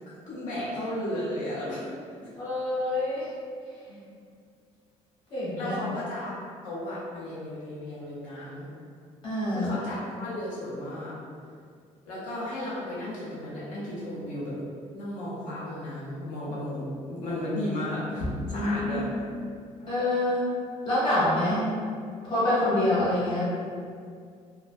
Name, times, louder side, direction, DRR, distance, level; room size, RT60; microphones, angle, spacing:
voice 1, 0.3-1.9 3.9-4.0 5.5-6.3 6.6-8.7 9.5-11.1 12.1-14.6 14.9-19.1 19.8-19.9 22.8-22.9, left 1 dB, 85° left, -8 dB, 0.6 m, -34 dB
voice 2, 2.4-3.3 5.3-5.8 9.2-9.7 18.5-19.0 19.9-20.5 20.8-21.7 22.2-23.4, left 1 dB, 40° left, -10 dB, 0.9 m, -26 dB
2.2 x 2.2 x 2.4 m, 2.2 s
cardioid pair, 160°, 13 cm